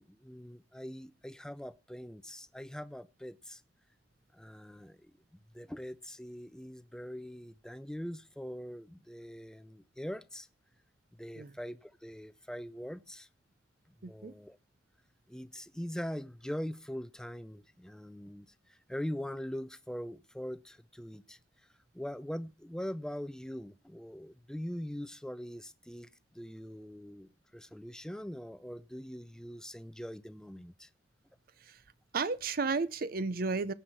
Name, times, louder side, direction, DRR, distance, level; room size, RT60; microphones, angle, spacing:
voice 1, 0.0-3.6 4.3-5.1 5.5-10.5 11.1-13.3 14.0-14.6 15.3-21.4 21.9-26.1 26.3-30.9, equal, 5° left, 0.5 m, -42 dB
voice 2, 14.0-14.3 31.6-31.8 32.1-33.7, right 4 dB, 55° right, 0.6 m, -33 dB
17.0 x 5.8 x 4.7 m
head